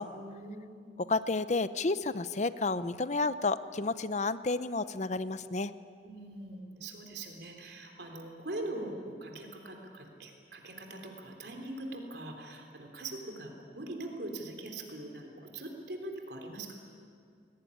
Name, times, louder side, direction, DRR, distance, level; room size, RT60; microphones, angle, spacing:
voice 1, 0.1-1.0 6.0-16.7, right 1 dB, 65° right, 3 dB, 3.5 m, -42 dB
voice 2, 1.1-5.7, left 3 dB, 40° left, 14 dB, 0.7 m, -31 dB
22.5 x 18.0 x 9.9 m, 2.3 s
head